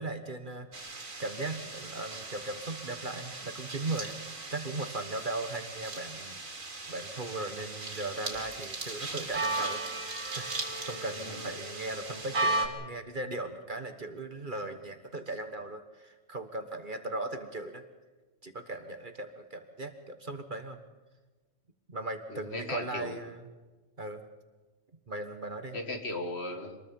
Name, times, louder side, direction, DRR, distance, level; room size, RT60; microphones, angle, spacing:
voice 1, 0.0-4.1 4.5-9.8 10.2-17.8 18.4-20.8 21.9-23.5 24.0-24.2 25.1-25.8, right 2 dB, 40° right, 8 dB, 1.5 m, -38 dB
sound 1, 0.7-12.7, right 2 dB, 80° right, 3.0 m, -37 dB
voice 2, 22.3-23.2 25.7-26.8, left 2 dB, 50° left, 5 dB, 2.2 m, -37 dB
26.0 x 20.5 x 5.4 m, 1.3 s
omnidirectional pair, 1.4 m